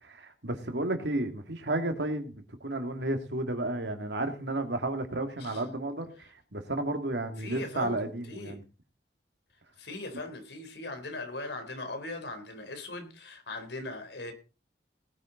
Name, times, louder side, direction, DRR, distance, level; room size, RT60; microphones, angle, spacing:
voice 1, 0.0-8.6, right 1 dB, 80° right, 6 dB, 2.4 m, -32 dB
voice 2, 7.4-8.6 9.8-14.3, left 2 dB, 80° left, 7 dB, 3.4 m, -40 dB
19.0 x 9.7 x 3.9 m, 0.32 s
head